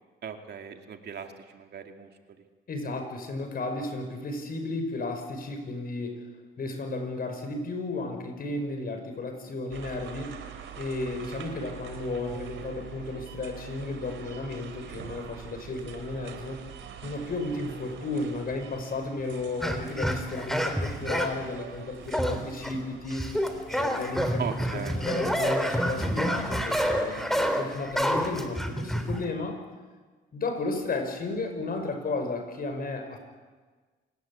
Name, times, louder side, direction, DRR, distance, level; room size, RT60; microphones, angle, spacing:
voice 1, 0.2-2.1 24.4-25.0, right 7 dB, 55° right, 5 dB, 2.5 m, -38 dB
voice 2, 2.7-6.3 6.6-10.4 10.8-16.7 17.0-23.3 23.7-24.5 24.7-29.6 30.3-33.2, left 2 dB, 50° left, 6 dB, 5.9 m, -33 dB
sound 1, 9.7-27.3, right 8 dB, 75° right, 3.4 m, -45 dB
sound 2, 19.6-21.4 22.1-22.8 23.1-29.2, equal, ahead, 3.3 m, -28 dB
27.5 x 18.5 x 8.7 m, 1.4 s
cardioid pair, 90°, 20 cm